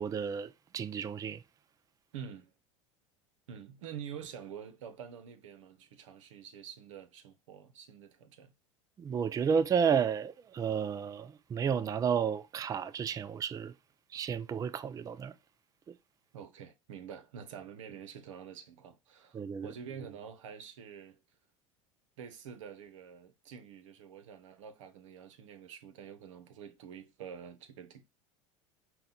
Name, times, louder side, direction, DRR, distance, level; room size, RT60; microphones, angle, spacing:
voice 1, 0.0-1.4 9.0-13.7 14.1-15.3 19.3-19.7, right 7 dB, 20° right, 0.4 m, -32 dB
voice 2, 2.1-2.5 3.5-8.5 16.3-21.2 22.2-28.0, right 8 dB, 75° right, 0.8 m, -47 dB
5.5 x 2.3 x 3.9 m
hypercardioid pair, 85°, 16 cm